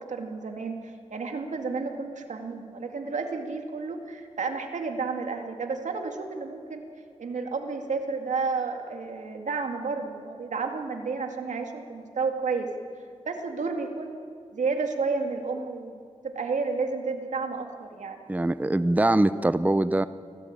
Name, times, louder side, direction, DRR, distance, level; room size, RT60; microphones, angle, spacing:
voice 1, 0.0-6.8 7.2-12.7 13.3-14.2 14.5-18.2, right 4 dB, 85° right, 4 dB, 2.4 m, -31 dB
voice 2, 18.3-20.1, right 1 dB, 15° right, 14 dB, 0.7 m, -23 dB
24.5 x 16.5 x 8.9 m, 2.2 s
cardioid pair, 70°, 12 cm